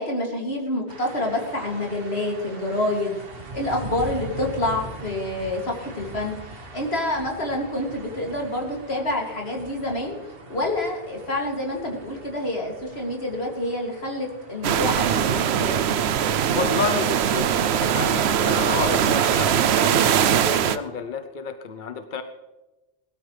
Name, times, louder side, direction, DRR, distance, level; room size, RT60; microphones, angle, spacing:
voice 1, 0.0-3.2 3.5-6.4 6.7-10.2 10.5-15.8, left 1 dB, 80° left, 0 dB, 3.0 m, -27 dB
sound 1, 0.9-19.0, right 2 dB, 65° right, 1.9 m, -42 dB
sound 2, 14.6-20.8, right 8 dB, 85° right, 0.9 m, -21 dB
voice 2, 16.5-22.2, left 5 dB, 55° left, 8 dB, 0.9 m, -30 dB
20.5 x 13.0 x 3.3 m, 1.1 s
omnidirectional pair, 1.1 m